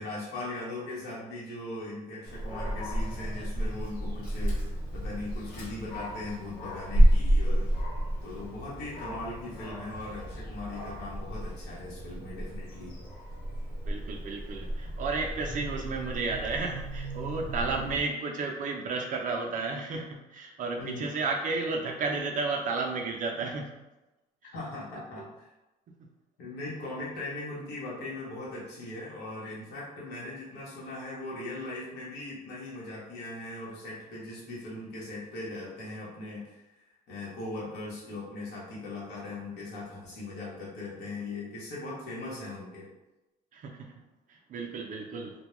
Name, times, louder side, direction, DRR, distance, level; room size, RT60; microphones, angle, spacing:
voice 1, 0.0-7.7 8.2-12.9 17.7-18.0 20.8-21.1 24.4-25.5 26.4-36.8 37.1-42.9, left 2 dB, 80° left, -6 dB, 1.0 m, -39 dB
Dog, 2.3-18.0, equal, 60° left, 0.7 m, -30 dB
voice 2, 13.8-23.7 24.9-25.0 43.5-43.9 44.3-45.3, right 4 dB, 50° right, 2 dB, 0.4 m, -32 dB
2.2 x 2.1 x 2.9 m, 0.99 s
cardioid pair, 110°, 17 cm